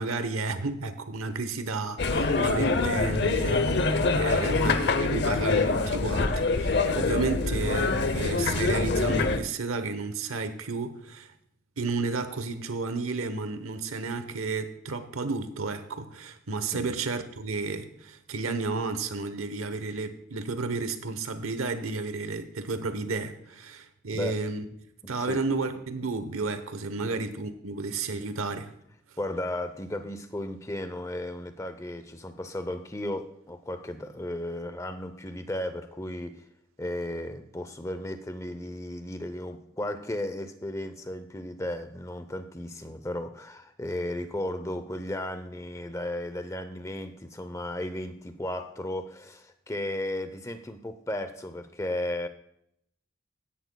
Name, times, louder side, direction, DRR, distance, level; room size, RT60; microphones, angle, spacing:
voice 1, 0.0-11.3 11.8-24.6 25.1-28.7, right 3 dB, 85° right, 1.0 m, -32 dB
sound 1, 2.0-9.4, left 3 dB, 50° left, 0.7 m, -25 dB
voice 2, 4.2-4.6 16.7-16.9 24.1-24.4 25.0-25.4 27.0-27.2 29.2-36.4 36.8-52.3, left 1 dB, 15° left, 0.6 m, -35 dB
16.0 x 10.5 x 2.3 m
head